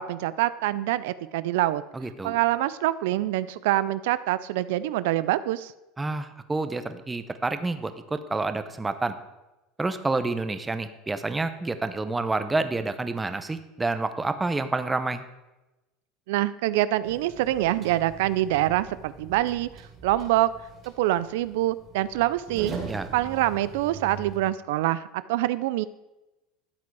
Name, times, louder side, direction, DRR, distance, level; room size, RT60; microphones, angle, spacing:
voice 1, 0.0-1.8 2.2-5.7 16.3-19.7 20.0-20.5 21.0-22.7 23.1-25.0 25.3-25.9, right 15 dB, 80° right, 16 dB, 0.4 m, -25 dB
voice 2, 1.9-2.4 6.0-9.2 9.8-15.2 22.9-23.1, right 3 dB, 10° right, 10 dB, 0.7 m, -28 dB
sound 1, 17.0-24.4, right 5 dB, 30° right, 2.6 m, -41 dB
13.0 x 8.6 x 4.7 m, 1.0 s
supercardioid pair, 145°, 0 cm